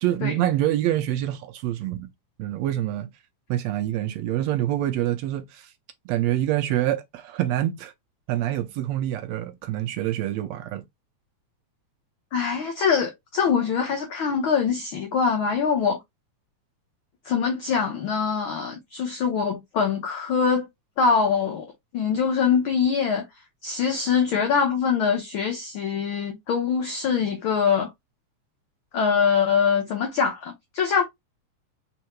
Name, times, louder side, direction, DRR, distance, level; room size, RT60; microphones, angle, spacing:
voice 1, 0.0-2.1 2.4-3.1 3.5-5.7 6.1-7.9 8.3-10.8, right 13 dB, 80° right, 1.6 m, -26 dB
voice 2, 12.3-16.0 17.2-20.7 21.0-21.7 21.9-23.2 23.6-27.9 28.9-31.0, left 6 dB, 70° left, 1.2 m, -23 dB
4.3 x 3.6 x 3.0 m
omnidirectional pair, 3.4 m